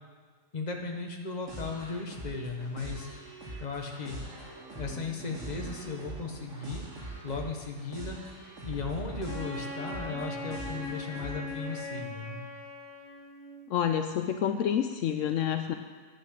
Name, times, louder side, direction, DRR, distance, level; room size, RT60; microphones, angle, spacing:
voice 1, 0.5-3.1 3.6-4.2 4.8-6.8 7.2-8.2 8.6-12.4, left 4 dB, 35° left, 2 dB, 1.3 m, -36 dB
sound 1, 1.5-11.8, right 2 dB, 70° right, 2.8 m, -43 dB
Wind instrument woodwind instrument, 9.2-13.6, left 2 dB, 40° right, 3.1 m, -40 dB
voice 2, 13.7-15.7, left 9 dB, 75° left, 7 dB, 0.9 m, -28 dB
9.5 x 9.1 x 6.4 m, 1.5 s
omnidirectional pair, 1.4 m